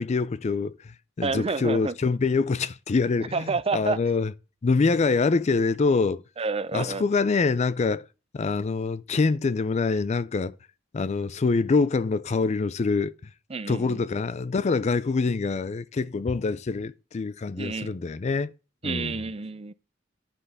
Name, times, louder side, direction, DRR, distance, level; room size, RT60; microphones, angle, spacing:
voice 1, 0.0-4.3 4.6-6.2 6.7-8.1 8.3-10.6 10.9-13.3 13.7-18.5 18.8-19.1, left 4 dB, 35° left, 0.4 m, -25 dB
voice 2, 1.2-1.9 3.3-4.0 6.4-7.0 13.5-14.0 17.6-18.0 18.8-19.7, right 4 dB, 30° right, 0.5 m, -29 dB
10.0 x 5.7 x 6.5 m
head